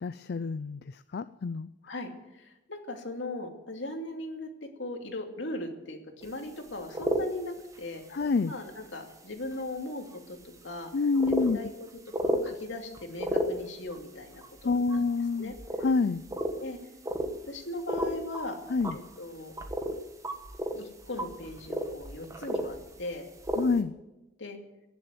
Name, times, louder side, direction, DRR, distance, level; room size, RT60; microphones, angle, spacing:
voice 1, 0.0-1.7 8.1-8.5 10.9-11.6 14.6-15.5 15.8-16.2 18.7-19.0 23.6-23.9, left 4 dB, 60° left, 14 dB, 0.4 m, -27 dB
voice 2, 1.9-8.2 8.4-10.9 11.5-11.7 12.2-15.0 15.3-15.5 16.6-16.8 17.4-18.6 18.9-19.5 20.7-23.3 24.4-24.6, left 2 dB, 75° left, 3 dB, 2.6 m, -39 dB
sound 1, 6.2-6.3 6.7-7.3 7.8-8.0 8.6-8.7 9.5-9.6 10.1-10.2 10.8-10.9 11.1-11.5 12.1-12.5 12.9-14.0 14.3-15.0 15.5-15.9 16.2-16.5 17.1-17.5 17.8-18.5 18.7-20.0 20.2-23.1 23.4-23.7, equal, 15° right, 1.5 m, -32 dB
17.5 x 7.6 x 9.4 m, 0.95 s
head